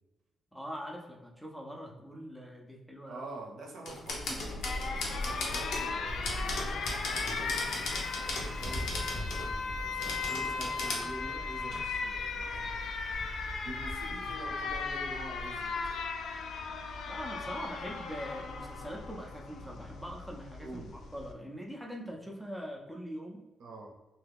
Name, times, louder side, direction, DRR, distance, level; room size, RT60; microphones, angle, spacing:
voice 1, 0.5-3.3 14.2-14.3 17.1-23.4, equal, 5° left, -1 dB, 0.4 m, -42 dB
voice 2, 3.1-7.9 8.5-12.9 13.6-16.1 20.6-21.0 23.6-23.9, right 2 dB, 65° right, 0 dB, 0.6 m, -47 dB
sound 1, 3.9-5.9 6.2-9.5 10.0-11.1 11.7-11.8, left 2 dB, 85° left, 0.7 m, -37 dB
Alarm, 4.1-21.3, left 4 dB, 65° left, 0.3 m, -37 dB
sound 2, 6.1-14.1, equal, 40° left, 0.7 m, -42 dB
2.8 x 2.3 x 3.4 m, 1.1 s
cardioid pair, 135°, 0 cm